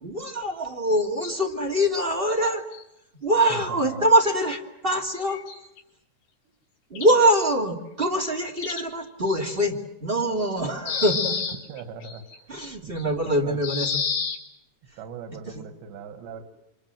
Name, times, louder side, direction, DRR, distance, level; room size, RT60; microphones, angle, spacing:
voice 1, 0.0-2.6 3.2-5.4 6.9-11.5 12.5-13.9 15.5-15.6, right 1 dB, 20° right, 4 dB, 1.9 m, -24 dB
sound 1, 2.3-2.8 3.9-4.0 4.3-4.4 5.2-5.8 7.0-7.5 8.6-8.8 9.3-9.6 10.2-10.3 10.9-13.3 13.6-14.4, left 6 dB, 90° left, 5.5 m, -30 dB
voice 2, 3.5-4.1 11.2-11.4 11.7-12.5 12.8-13.6 15.0-16.4, right 6 dB, 85° right, 6 dB, 4.2 m, -40 dB
28.5 x 26.5 x 7.7 m, 0.87 s
omnidirectional pair, 4.9 m